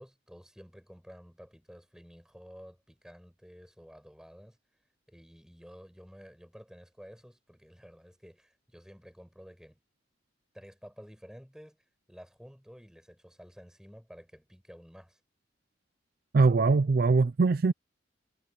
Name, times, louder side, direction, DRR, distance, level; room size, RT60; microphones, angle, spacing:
voice 1, 0.0-4.6 5.1-9.8 10.5-11.8 12.1-15.2, equal, 5° right, 6.4 m, -52 dB
voice 2, 16.3-17.7, right 4 dB, 50° right, 0.4 m, -22 dB
head